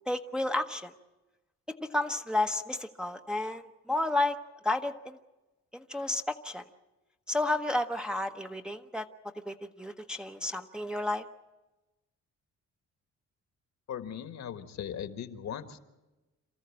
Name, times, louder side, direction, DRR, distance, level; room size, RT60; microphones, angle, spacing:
voice 1, 0.1-0.9 1.8-3.6 3.9-4.4 4.6-5.2 5.9-6.6 7.3-9.1 9.5-11.2, left 2 dB, 5° right, 4 dB, 0.9 m, -31 dB
voice 2, 13.9-15.8, left 9 dB, 65° left, 9 dB, 1.6 m, -38 dB
27.5 x 13.5 x 8.6 m, 1.1 s
cardioid pair, 90°, 30 cm